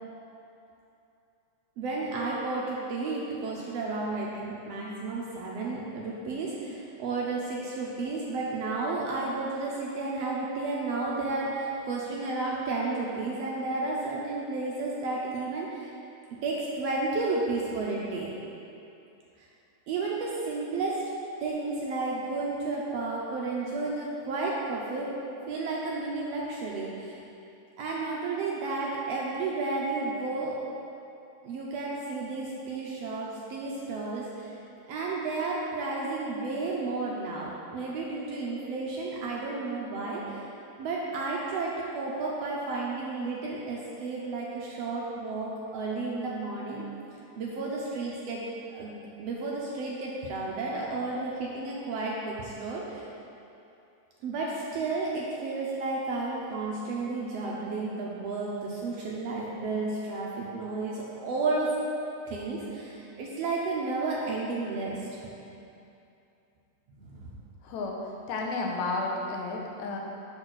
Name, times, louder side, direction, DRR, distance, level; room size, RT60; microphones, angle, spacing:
voice 1, 1.8-15.9 16.4-18.3 19.9-21.0 21.4-25.1 25.5-27.2 27.8-30.6 31.4-34.5 34.9-40.4 40.8-46.8 47.4-48.4 48.7-48.9 49.2-53.0 54.2-61.7 62.3-65.0 67.0-67.2, right 3 dB, 75° right, -4 dB, 1.6 m, -32 dB
voice 2, 67.6-68.0 68.3-70.0, left 3 dB, 85° left, -1 dB, 2.1 m, -32 dB
6.8 x 4.1 x 6.1 m, 2.7 s
omnidirectional pair, 3.3 m